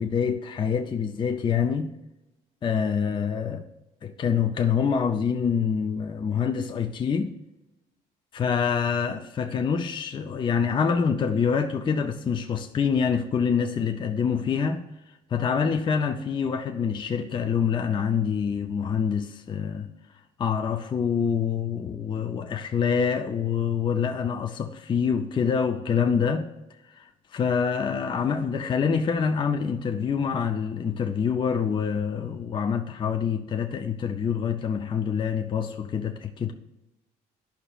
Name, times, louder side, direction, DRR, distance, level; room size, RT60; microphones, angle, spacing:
voice 1, 0.0-1.9 2.6-3.6 4.0-7.3 8.3-14.8 15.3-19.9 20.4-26.5 27.0-27.1 27.3-36.5, left 6 dB, 30° left, 0.5 m, -26 dB
11.5 x 5.5 x 2.4 m
cardioid pair, 110°, 17 cm